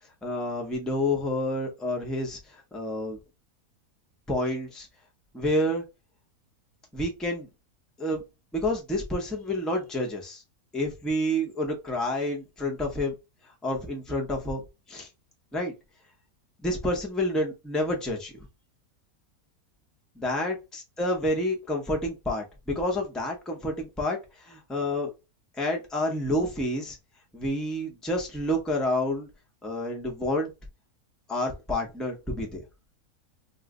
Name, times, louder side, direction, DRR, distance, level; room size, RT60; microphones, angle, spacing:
voice 1, 0.2-3.2 4.3-4.9 5.3-5.8 6.9-7.5 8.0-8.2 8.5-10.4 10.7-13.1 13.6-14.6 14.9-15.1 15.5-15.7 16.6-18.3 20.2-25.1 25.6-27.0 27.3-29.3 29.6-30.5 31.3-32.6, left 1 dB, ahead, 0 dB, 0.3 m, -29 dB
3.1 x 2.0 x 3.6 m, 0.25 s
omnidirectional pair, 1.6 m